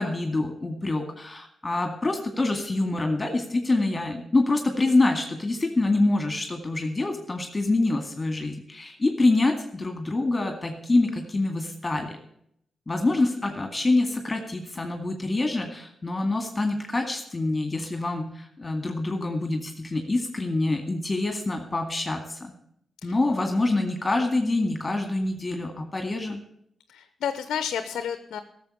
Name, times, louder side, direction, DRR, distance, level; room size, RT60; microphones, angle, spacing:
voice 1, 0.0-12.2 12.9-22.5 23.0-26.4, left 2 dB, 30° left, 5 dB, 2.1 m, -26 dB
voice 2, 26.9-28.4, left 8 dB, 75° left, 11 dB, 0.8 m, -31 dB
13.0 x 7.3 x 8.4 m, 0.71 s
supercardioid pair, 40°, 0 cm